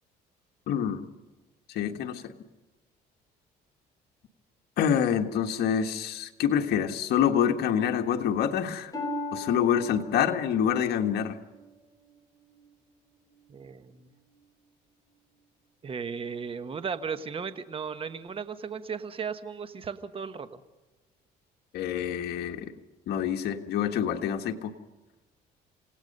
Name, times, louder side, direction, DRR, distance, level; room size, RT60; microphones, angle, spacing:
voice 1, 0.7-1.0 1.7-2.3 4.8-8.9 9.3-11.4 21.7-22.7 23.1-24.7, left 8 dB, 70° left, 5 dB, 1.6 m, -26 dB
Harp, 8.9-12.7 13.2-13.6 14.3-14.4, left 1 dB, 20° left, 5.6 m, -39 dB
voice 2, 13.5-14.1 15.8-20.6, right 6 dB, 30° right, 11 dB, 1.2 m, -36 dB
27.5 x 17.5 x 5.4 m, 1.1 s
cardioid pair, 110°, 17 cm